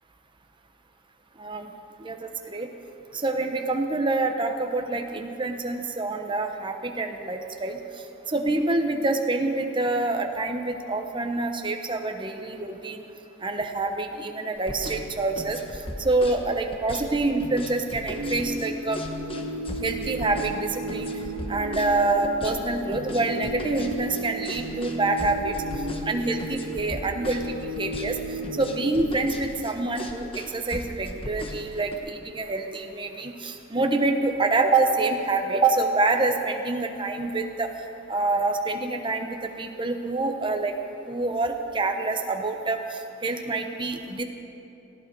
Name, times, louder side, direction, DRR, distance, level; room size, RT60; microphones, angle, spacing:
voice 1, 1.4-1.7 2.0-2.7 3.1-13.0 13.4-19.0 19.8-21.1 21.5-28.2 28.5-37.7 38.1-40.7 41.1-44.2, right 2 dB, 20° right, 4 dB, 1.0 m, -26 dB
sound 1, 14.6-32.0, left 1 dB, 25° left, 1.2 m, -37 dB
sound 2, 18.1-29.3, right 1 dB, 60° right, 1.7 m, -34 dB
18.5 x 16.0 x 4.7 m, 2.8 s
head